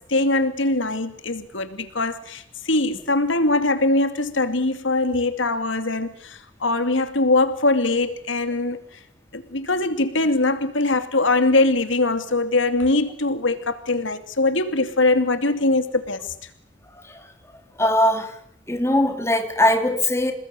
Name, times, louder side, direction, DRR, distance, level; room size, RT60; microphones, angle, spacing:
voice 1, 0.0-8.8 9.3-16.2, left 2 dB, 90° left, 2.6 m, -22 dB
voice 2, 17.8-18.3 18.7-20.3, left 1 dB, 15° left, 3.2 m, -20 dB
28.5 x 20.0 x 9.8 m
head